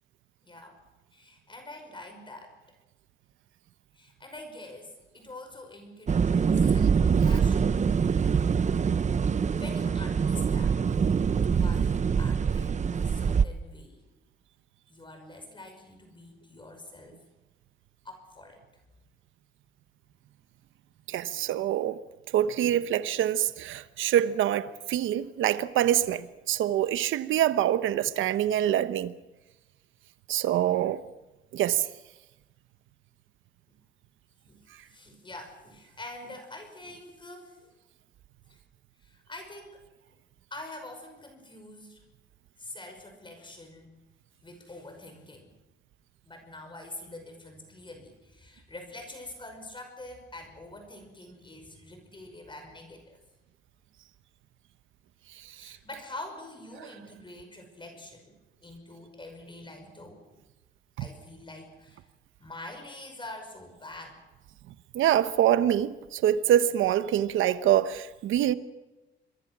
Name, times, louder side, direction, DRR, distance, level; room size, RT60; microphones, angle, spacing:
voice 1, 0.4-0.8 1.1-2.5 3.9-7.7 8.7-8.8 9.6-10.8 11.5-14.0 14.9-17.2 18.0-18.6 33.7-33.8 34.5-37.7 38.5-38.6 39.0-39.8 40.5-42.0 42.6-43.9 44.4-45.5 46.2-53.2 55.6-60.4 61.0-62.0 62.4-64.2, left 2 dB, 25° left, 5.6 m, -45 dB
sound 1, 6.1-13.4, right 6 dB, 35° right, 0.9 m, -24 dB
voice 2, 21.1-22.0 22.3-29.1 30.3-31.0 31.5-31.9 55.6-55.8 64.7-68.5, right 11 dB, 80° right, 1.2 m, -25 dB
26.5 x 23.0 x 6.2 m
cardioid pair, 90°, 20 cm